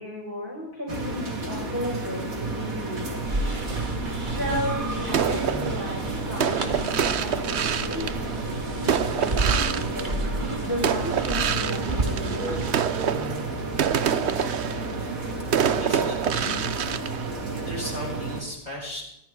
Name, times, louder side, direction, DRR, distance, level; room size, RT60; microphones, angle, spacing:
voice 1, 0.0-3.2 4.3-10.2 10.6-12.6, left 1 dB, 10° right, -5 dB, 5.2 m, -34 dB
sound 1, 0.9-18.4, right 3 dB, 70° right, 3.0 m, -32 dB
sound 2, 3.2-12.7, right 2 dB, 35° right, 1.9 m, -32 dB
sound 3, 5.1-10.5 10.8-18.0, right 8 dB, 55° right, 1.0 m, -27 dB
voice 2, 15.1-15.5 15.7-16.6 17.6-19.0, left 1 dB, 25° left, -6 dB, 8.3 m, -36 dB
24.0 x 15.0 x 3.8 m, 0.81 s
omnidirectional pair, 1.5 m